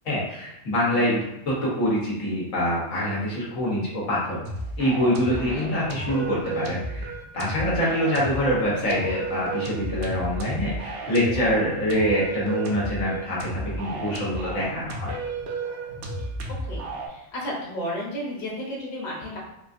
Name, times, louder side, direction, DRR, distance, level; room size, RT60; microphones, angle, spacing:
voice 1, 0.0-4.4 4.8-15.2, equal, 80° left, -5 dB, 1.3 m, -25 dB
sound 1, 4.4-17.1, right 2 dB, 60° right, 0.7 m, -33 dB
voice 2, 5.2-5.7 16.7-19.4, left 1 dB, 40° left, -5 dB, 0.9 m, -33 dB
3.7 x 2.5 x 2.5 m, 0.85 s
omnidirectional pair, 1.3 m